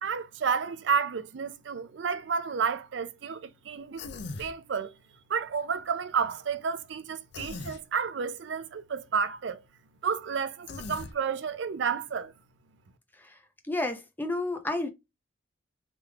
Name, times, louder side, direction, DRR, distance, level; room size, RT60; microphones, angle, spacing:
voice 1, 0.0-4.1 4.4-4.9 5.3-9.6 10.0-12.3, right 6 dB, 60° right, 0.4 m, -31 dB
Human voice, 4.0-4.5 7.3-7.8 10.7-11.1, left 3 dB, 60° left, 0.5 m, -39 dB
voice 2, 13.7-14.9, left 2 dB, 10° left, 0.6 m, -31 dB
3.4 x 3.1 x 2.3 m
head